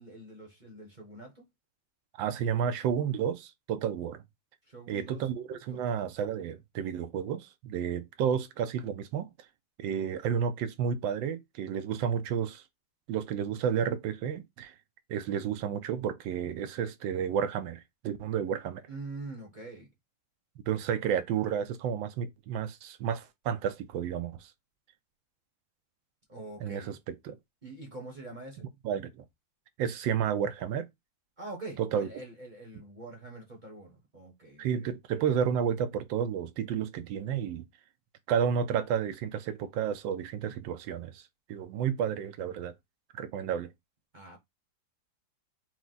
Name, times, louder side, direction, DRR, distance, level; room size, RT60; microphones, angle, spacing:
voice 1, 0.0-1.4 4.7-5.2 5.7-6.0 18.9-19.9 26.3-27.0 27.6-28.6 31.4-34.7 44.1-44.4, right 2 dB, 35° right, 0.8 m, -44 dB
voice 2, 2.2-4.2 4.9-9.3 9.8-12.6 13.1-14.7 15.1-18.8 20.7-24.5 26.6-27.4 28.8-29.2 29.8-30.9 31.8-32.1 34.6-37.6 38.3-42.7 43.1-43.7, right 8 dB, 85° right, 1.3 m, -31 dB
4.6 x 2.1 x 3.8 m
omnidirectional pair, 2.0 m